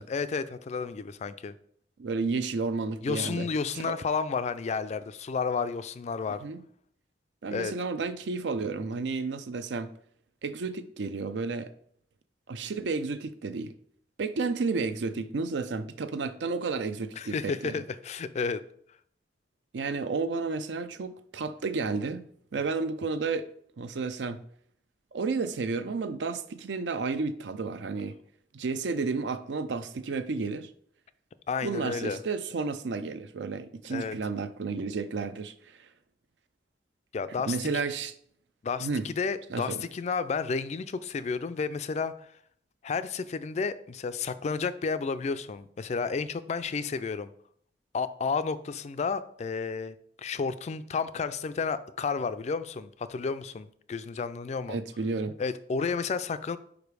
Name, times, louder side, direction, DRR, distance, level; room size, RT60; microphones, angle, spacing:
voice 1, 0.1-1.5 3.0-6.4 7.5-7.7 17.2-18.6 31.5-32.2 33.9-34.2 37.1-37.6 38.6-42.3 42.8-47.3 47.9-54.8 55.4-56.6, left 5 dB, 40° left, 0.3 m, -31 dB
voice 2, 2.0-3.5 3.7-4.0 6.4-6.6 7.4-9.9 10.4-11.7 12.5-13.7 14.2-17.7 19.7-23.5 23.8-24.4 25.1-28.2 28.5-30.7 31.6-35.8 37.5-38.1 38.8-39.1 39.5-39.8 54.7-55.4, right 4 dB, 75° right, 0.5 m, -32 dB
5.0 x 4.8 x 4.7 m
head